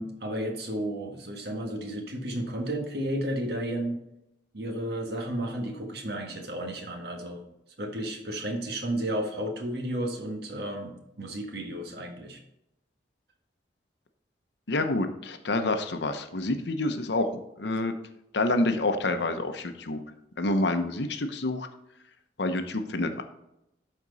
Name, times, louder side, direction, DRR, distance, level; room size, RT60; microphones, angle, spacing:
voice 1, 0.0-4.0 4.5-7.4 7.8-12.4, right 1 dB, 55° right, 3 dB, 1.6 m, -33 dB
voice 2, 14.7-17.3 17.6-17.9 18.3-20.0 20.4-21.7 22.4-23.2, left 2 dB, 65° left, 8 dB, 0.8 m, -27 dB
12.0 x 4.4 x 4.0 m, 0.85 s
head